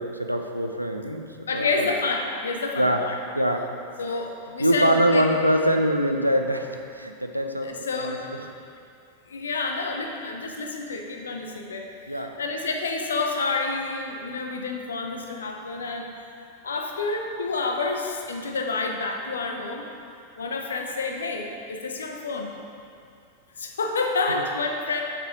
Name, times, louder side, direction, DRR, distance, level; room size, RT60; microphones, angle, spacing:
voice 1, 0.0-1.9 2.8-3.0 3.3-3.7 4.6-8.2 12.1-12.3 24.3-24.4, equal, 90° right, 5 dB, 0.5 m, -24 dB
voice 2, 1.5-3.2 4.0-5.3 7.6-8.3 9.3-16.1 16.6-19.9 20.4-22.5 23.6-25.0, left 3 dB, 70° left, 2 dB, 0.8 m, -29 dB
6.6 x 6.1 x 5.1 m, 2.4 s
figure-of-eight pair, 90°, 0 cm